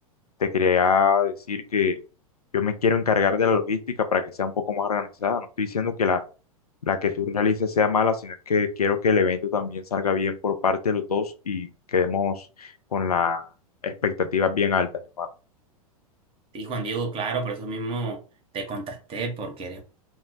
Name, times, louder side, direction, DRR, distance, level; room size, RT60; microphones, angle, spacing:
voice 1, 0.4-2.0 2.5-6.2 6.9-13.4 13.8-14.9 15.2-15.3, left 5 dB, 85° left, 0.5 m, -24 dB
voice 2, 16.5-18.2 18.5-19.8, right 3 dB, 30° right, 0.8 m, -30 dB
2.3 x 2.0 x 3.7 m
figure-of-eight pair, 95°, 19 cm